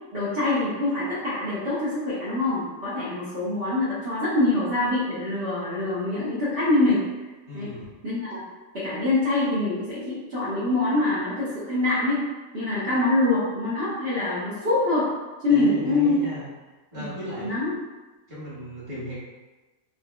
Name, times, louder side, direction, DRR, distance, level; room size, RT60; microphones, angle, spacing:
voice 1, 0.1-7.0 7.5-7.7 8.0-8.4 8.7-12.3 12.5-15.1 15.4-16.2 17.0-17.1 17.4-17.8, left 2 dB, 50° right, -12 dB, 1.1 m, -24 dB
voice 2, 7.5-7.9 15.5-16.5 16.9-17.5 18.3-19.1, equal, 25° right, -11 dB, 1.5 m, -36 dB
4.4 x 2.7 x 2.2 m, 1.2 s
omnidirectional pair, 1.5 m